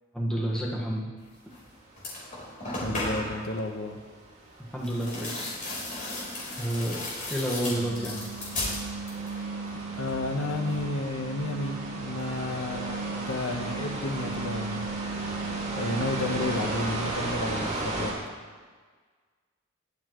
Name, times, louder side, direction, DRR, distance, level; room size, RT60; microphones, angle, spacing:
voice 1, 0.1-1.1 4.7-5.5 6.6-8.3, equal, 5° left, -4 dB, 1.5 m, -30 dB
sound 1, 1.5-1.6 2.0-3.4 4.8-9.4 9.7-10.3, left 1 dB, 40° left, 4.0 m, -35 dB
sound 2, 2.0-18.1, right 2 dB, 30° right, 2.2 m, -37 dB
voice 2, 2.8-4.0 9.3-9.5 9.9-14.9 15.7-18.2, left 2 dB, 75° left, 4 dB, 1.2 m, -32 dB
sound 3, 7.7-17.4, right 4 dB, 70° right, 0.4 m, -38 dB
21.0 x 7.2 x 3.1 m, 1.5 s
head